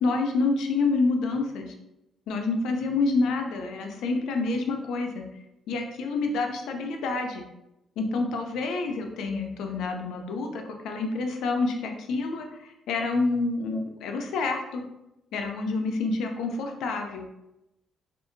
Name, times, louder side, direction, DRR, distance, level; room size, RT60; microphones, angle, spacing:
voice 1, 0.0-1.7 2.3-5.2 5.7-7.5 8.0-14.8 15.3-17.2, left 3 dB, 85° left, 3 dB, 0.4 m, -28 dB
2.7 x 2.4 x 2.5 m, 0.89 s
cardioid pair, 90°, 0 cm